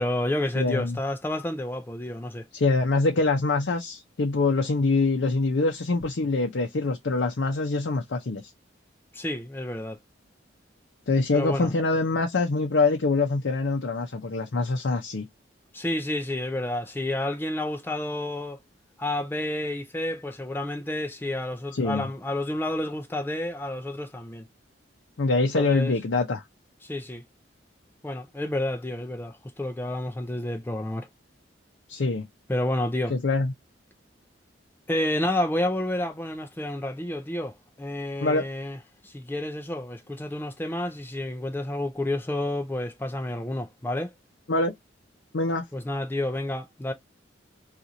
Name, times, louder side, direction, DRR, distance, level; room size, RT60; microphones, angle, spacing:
voice 1, 0.0-2.4 9.1-10.0 11.3-11.7 15.7-18.6 19.0-24.4 25.5-26.0 26.8-27.2 28.0-31.1 32.5-33.1 34.9-38.8 39.0-44.1 45.7-46.9, left 1 dB, 10° left, 0.4 m, -30 dB
voice 2, 0.6-1.0 2.5-8.4 11.1-15.2 21.7-22.1 25.2-26.4 31.9-32.2 33.1-33.5 38.2-38.4 44.5-44.7 45.3-45.6, left 3 dB, 65° left, 0.6 m, -24 dB
2.9 x 2.4 x 3.8 m
head